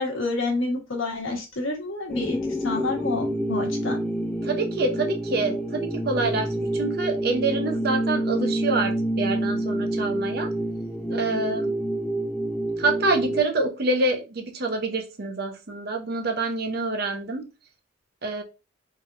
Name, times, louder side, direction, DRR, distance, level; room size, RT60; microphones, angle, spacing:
voice 1, 0.0-4.0, left 3 dB, 80° left, 1 dB, 1.3 m, -28 dB
sound 1, 2.1-13.4, right 1 dB, 5° left, 0.3 m, -27 dB
voice 2, 4.4-10.5 11.1-11.7 12.8-17.4 18.2-18.4, right 3 dB, 50° right, 3 dB, 0.8 m, -26 dB
4.2 x 3.6 x 2.6 m, 0.29 s
head